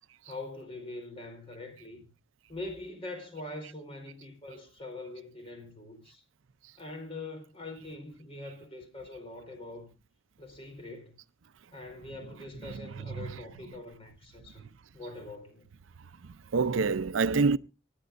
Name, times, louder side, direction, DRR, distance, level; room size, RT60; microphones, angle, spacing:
voice 1, 0.2-2.1 2.5-6.2 6.8-9.9 10.4-11.2 11.7-14.6 14.9-15.6, left 2 dB, 30° left, 4.5 m, -43 dB
voice 2, 12.7-13.3 16.5-17.6, right 4 dB, 85° right, 0.5 m, -27 dB
25.0 x 10.5 x 2.5 m
head